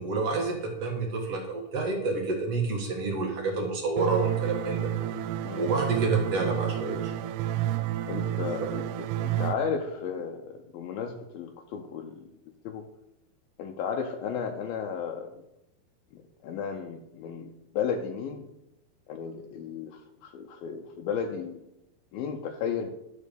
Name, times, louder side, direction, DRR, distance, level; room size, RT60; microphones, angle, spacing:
voice 1, 0.0-4.9 5.5-7.1 8.6-8.7, right 3 dB, 50° right, 0 dB, 2.3 m, -29 dB
sound 1, 4.0-9.5, right 12 dB, 85° right, 2.5 m, -30 dB
voice 2, 8.1-12.3 12.6-12.8 13.6-15.3 16.1-18.5 19.1-21.6 22.1-22.9, left 6 dB, 75° left, 3 dB, 2.5 m, -34 dB
12.5 x 4.6 x 6.8 m, 0.89 s
omnidirectional pair, 4.5 m